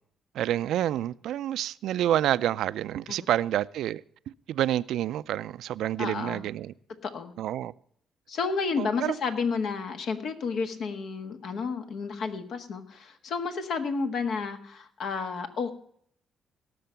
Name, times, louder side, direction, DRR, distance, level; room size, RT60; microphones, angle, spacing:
voice 1, 0.3-4.0 4.5-6.7 7.4-7.7 8.8-9.1, right 12 dB, 80° right, 0.4 m, -28 dB
voice 2, 6.0-6.4 7.0-7.3 8.3-15.7, left 5 dB, 70° left, 1.6 m, -31 dB
17.5 x 6.8 x 5.7 m
cardioid pair, 90°, 0 cm